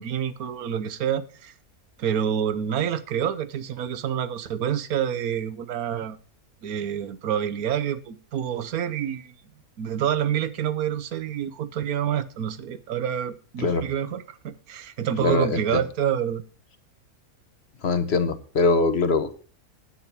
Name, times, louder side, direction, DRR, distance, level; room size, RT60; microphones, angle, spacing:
voice 1, 0.0-1.5 2.0-6.2 6.6-9.3 9.8-16.4, right 9 dB, 85° right, 1.4 m, -27 dB
voice 2, 15.2-15.6 17.8-19.3, left 3 dB, 50° left, 1.3 m, -22 dB
10.0 x 8.9 x 5.8 m
omnidirectional pair, 1.5 m